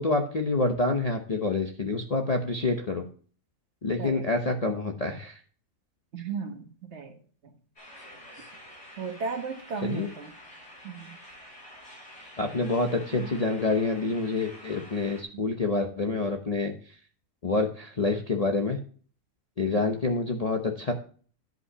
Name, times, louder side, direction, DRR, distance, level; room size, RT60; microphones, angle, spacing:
voice 1, 0.0-3.0 3.8-5.4 9.8-10.1 12.4-16.7 17.4-18.8 19.6-20.9, left 3 dB, 30° left, 2 dB, 0.8 m, -27 dB
voice 2, 6.1-7.5 9.0-10.3 10.8-11.2 13.1-13.3 15.3-15.4, right 5 dB, 50° right, 5 dB, 1.6 m, -36 dB
sound 1, 7.8-15.2, equal, 55° left, 5.8 m, -48 dB
10.5 x 5.6 x 5.5 m, 0.43 s
omnidirectional pair, 1.5 m